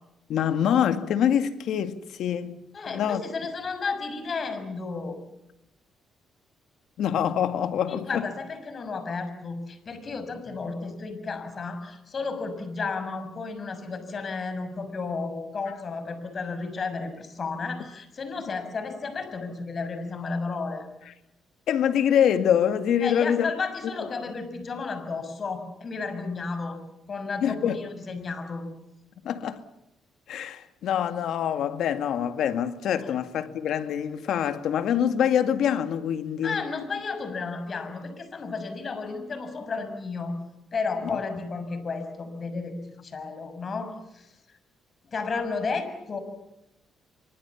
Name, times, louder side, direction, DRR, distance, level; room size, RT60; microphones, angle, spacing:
voice 1, 0.3-3.2 7.0-8.3 21.7-23.5 27.4-27.8 29.2-29.6 30.3-36.6 41.0-41.2, left 9 dB, 75° left, 2.0 m, -25 dB
voice 2, 2.7-5.2 7.9-20.9 23.0-26.8 27.1-28.7 33.0-33.1 36.4-40.4 40.7-44.3 45.0-46.2, left 4 dB, 45° left, 6.3 m, -33 dB
26.0 x 24.0 x 7.2 m
cardioid pair, 90°, 0 cm